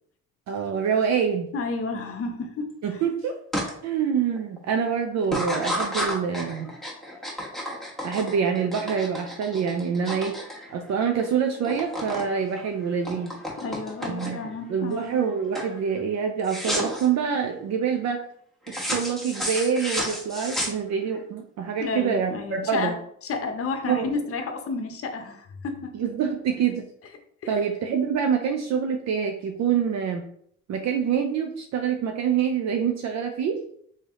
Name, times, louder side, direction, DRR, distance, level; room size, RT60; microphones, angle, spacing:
voice 1, 0.5-1.5 2.8-3.4 3.8-6.7 8.0-10.3 10.7-13.3 14.0-14.4 14.7-18.2 18.9-22.9 23.9-24.1 25.9-26.8 27.5-30.2 30.7-33.6, right 7 dB, 60° right, 3 dB, 0.5 m, -26 dB
voice 2, 1.5-3.0 13.6-15.1 21.8-25.9 27.4-27.7, left 4 dB, 50° left, 6 dB, 0.7 m, -31 dB
sound 1, 3.5-3.7 4.2-4.6 5.2-11.3 11.5-12.3 12.6-14.5 15.0-15.3 15.5-15.8 16.4-17.1 18.7-21.2, equal, ahead, 1.1 m, -31 dB
3.3 x 2.8 x 3.6 m, 0.67 s
cardioid pair, 90°, 30 cm